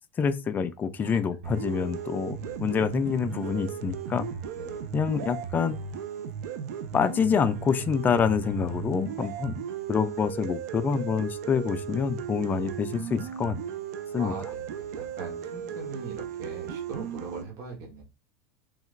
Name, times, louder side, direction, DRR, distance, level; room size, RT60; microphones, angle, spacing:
voice 1, 0.2-4.3 4.9-5.8 6.9-9.6 9.9-13.6 14.1-14.3, left 6 dB, 20° left, 0.3 m, -27 dB
sound 1, 1.4-17.4, right 8 dB, 85° right, 0.4 m, -36 dB
voice 2, 4.5-4.9 14.2-18.0, right 4 dB, 40° right, 1.0 m, -41 dB
3.2 x 2.3 x 3.1 m
supercardioid pair, 130°, 9 cm